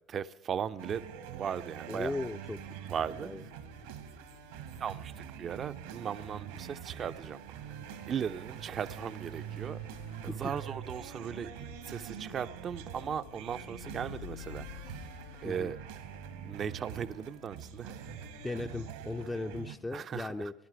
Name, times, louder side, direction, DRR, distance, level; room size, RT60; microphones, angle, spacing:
voice 1, 0.1-1.0 1.3-2.1 2.9-3.3 4.8-7.8 8.1-9.8 10.2-11.5 11.9-14.7 15.4-15.8 16.4-17.9 19.9-20.5, right 8 dB, 40° right, 0.5 m, -37 dB
sound 1, 0.8-19.8, right 9 dB, 70° right, 1.1 m, -45 dB
voice 2, 1.9-2.6 3.2-3.4 10.3-10.4 15.4-15.7 18.4-20.5, left 2 dB, 15° left, 0.5 m, -37 dB
sound 2, 2.4-18.9, left 7 dB, 70° left, 0.7 m, -52 dB
18.5 x 11.5 x 4.7 m
figure-of-eight pair, 65°, 0 cm